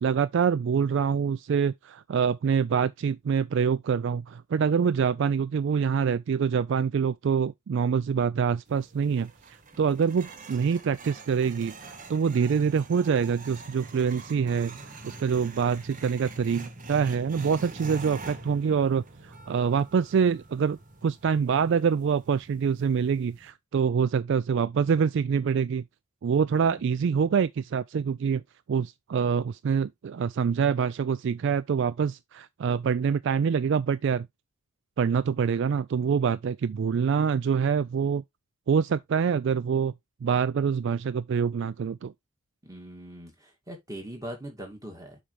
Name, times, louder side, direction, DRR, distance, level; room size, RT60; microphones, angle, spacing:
voice 1, 0.0-11.7 12.1-14.8 15.0-25.8 26.2-28.4 28.7-34.3 35.0-38.2 38.7-39.9 40.2-42.1, right 6 dB, 60° right, 0.3 m, -25 dB
sound 1, 8.7-23.5, right 3 dB, 40° right, 1.0 m, -45 dB
voice 2, 26.6-27.3 42.6-45.2, right 1 dB, 15° right, 2.3 m, -42 dB
7.1 x 5.1 x 3.3 m
head